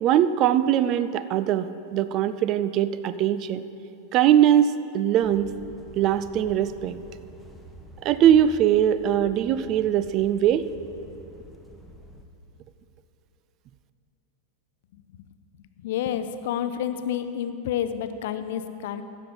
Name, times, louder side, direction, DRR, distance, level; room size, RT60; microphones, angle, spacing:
voice 1, 0.0-3.6 4.1-5.5 6.0-7.0 8.0-10.7, right 10 dB, 35° right, 13 dB, 0.4 m, -21 dB
sound 1, 5.2-12.2, right 1 dB, 5° right, 0.9 m, -48 dB
voice 2, 15.8-19.0, left 9 dB, 55° left, 10 dB, 0.5 m, -29 dB
15.5 x 6.4 x 5.3 m, 2.8 s
figure-of-eight pair, 90°, 0 cm